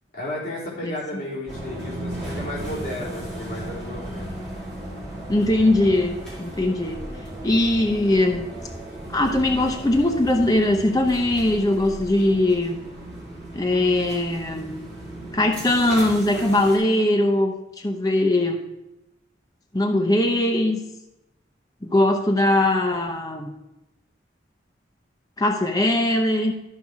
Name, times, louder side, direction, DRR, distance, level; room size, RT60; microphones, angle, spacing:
voice 1, 0.1-4.4, left 1 dB, 50° left, -7 dB, 3.7 m, -33 dB
sound 1, 1.5-16.8, right 1 dB, 5° left, 3.8 m, -36 dB
voice 2, 5.3-7.0 7.4-8.5 9.1-12.8 13.5-14.7 15.3-17.5 17.8-18.6 19.7-20.8 21.8-23.5 25.4-26.5, left 1 dB, 20° left, 3 dB, 0.7 m, -20 dB
13.0 x 5.3 x 4.7 m, 0.93 s
head